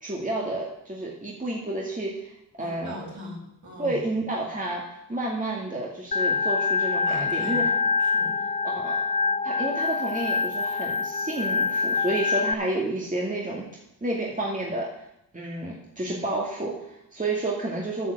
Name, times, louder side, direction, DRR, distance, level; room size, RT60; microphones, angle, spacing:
voice 1, 0.0-2.3 2.6-2.9 3.8-7.7 8.6-9.0 9.4-13.7 14.0-15.0 15.3-18.1, right 2 dB, 20° right, -3 dB, 2.3 m, -30 dB
voice 2, 2.6-4.0 7.1-7.7 8.0-8.4, equal, 50° right, -2 dB, 4.9 m, -40 dB
Organ, 6.1-12.5, left 5 dB, 20° left, 0.4 m, -25 dB
9.4 x 5.9 x 7.6 m, 0.80 s
cardioid pair, 55°, 39 cm